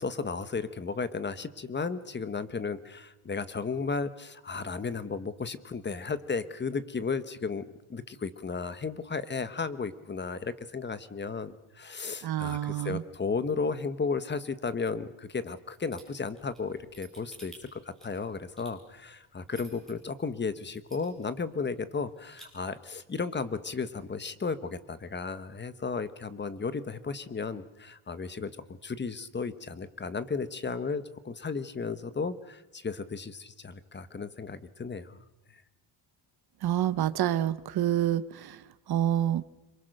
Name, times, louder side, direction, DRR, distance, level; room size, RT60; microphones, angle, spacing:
voice 1, 0.0-7.6 7.9-28.5 28.8-35.2, left 4 dB, 20° left, 13 dB, 1.1 m, -34 dB
voice 2, 12.2-13.0 36.6-39.4, right 11 dB, 50° right, 14 dB, 0.9 m, -28 dB
sound 1, 15.9-19.9 20.4-20.5 20.8-21.4 21.7-21.8 22.1-22.5, right 2 dB, ahead, 6.7 m, -51 dB
26.5 x 23.5 x 6.6 m, 1.0 s
cardioid pair, 150°, 50 cm